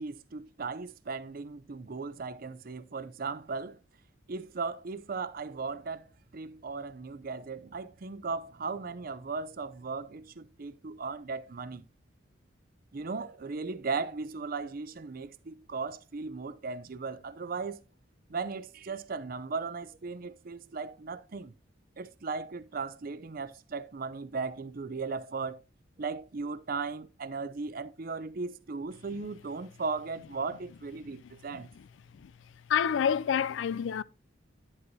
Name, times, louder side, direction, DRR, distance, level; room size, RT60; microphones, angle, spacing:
voice 1, 0.0-3.8 4.3-6.1 6.3-11.8 12.9-17.8 18.3-21.5 22.0-25.6 26.0-31.7, right 4 dB, 45° right, 0.5 m, -37 dB
voice 2, 32.7-34.0, left 8 dB, 70° left, 0.3 m, -28 dB
9.7 x 7.8 x 2.7 m
head